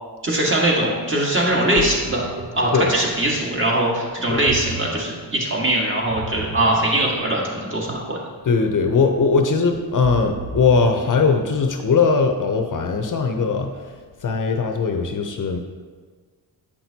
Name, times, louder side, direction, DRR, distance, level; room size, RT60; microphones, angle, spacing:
voice 1, 0.2-2.2 2.5-8.2, right 1 dB, 30° right, -3 dB, 1.7 m, -21 dB
Ocean, 1.3-12.1, right 4 dB, 60° right, 0.8 m, -36 dB
voice 2, 8.5-13.7 14.2-15.6, left 4 dB, 50° left, 5 dB, 0.7 m, -19 dB
8.4 x 5.9 x 2.8 m, 1.5 s
cardioid pair, 85°, 39 cm